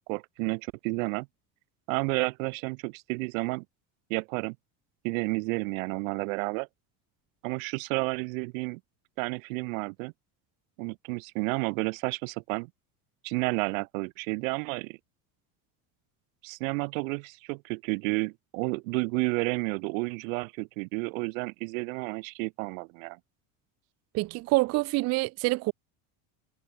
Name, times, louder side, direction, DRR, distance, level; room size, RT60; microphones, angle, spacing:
voice 1, 0.1-1.3 1.9-3.6 4.1-4.6 5.0-6.7 7.4-8.8 9.2-10.1 10.8-12.7 13.2-15.0 16.4-23.2, right 30 dB, 85° right, 1.2 m, -31 dB
voice 2, 24.1-25.7, right 22 dB, 40° right, 0.6 m, -26 dB
cardioid pair, 165°, 39 cm